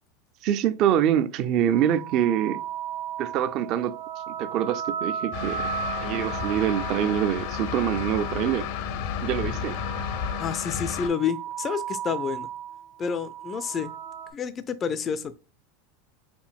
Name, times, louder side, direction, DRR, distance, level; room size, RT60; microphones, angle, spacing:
voice 1, 0.4-2.6 3.2-4.0 4.3-5.6 6.0-8.7 9.2-9.8, right 10 dB, 45° right, 0.4 m, -25 dB
sound 1, 1.7-8.8 9.3-10.6 10.9-14.3, right 9 dB, 80° right, 1.6 m, -36 dB
sound 2, 5.3-11.1, left 8 dB, 70° left, 0.6 m, -32 dB
voice 2, 10.4-12.5 13.0-13.9 14.3-15.4, left 7 dB, 25° left, 0.3 m, -29 dB
5.3 x 2.6 x 2.3 m
supercardioid pair, 135°, 0 cm